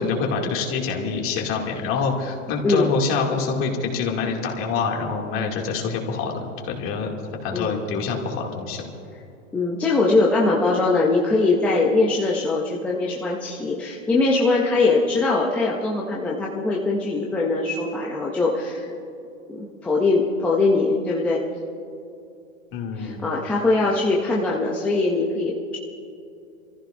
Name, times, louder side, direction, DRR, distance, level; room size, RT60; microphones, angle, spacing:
voice 1, 0.0-7.1 7.4-8.9 22.7-23.4, left 5 dB, 35° left, 0 dB, 2.3 m, -26 dB
voice 2, 9.5-18.9 19.5-21.4 23.0-25.8, left 3 dB, 5° left, -3 dB, 0.3 m, -22 dB
29.0 x 15.0 x 2.5 m, 2.6 s
hypercardioid pair, 135°, 39 cm